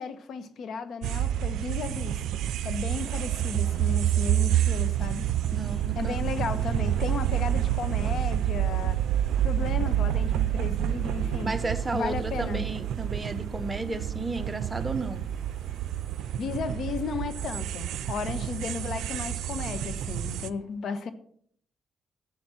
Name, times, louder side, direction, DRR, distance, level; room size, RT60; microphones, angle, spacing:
voice 1, 0.0-2.2 2.6-5.3 5.9-9.0 9.4-11.5 11.9-12.7 16.4-21.1, left 5 dB, 65° left, 1.2 m, -34 dB
sound 1, 1.0-20.5, right 12 dB, 80° right, 0.5 m, -28 dB
sound 2, 2.9-20.5, right 1 dB, 15° left, 5.6 m, -47 dB
voice 2, 5.4-6.2 11.4-15.2, right 2 dB, 20° right, 1.2 m, -33 dB
11.5 x 8.3 x 5.8 m
cardioid pair, 90°, 0 cm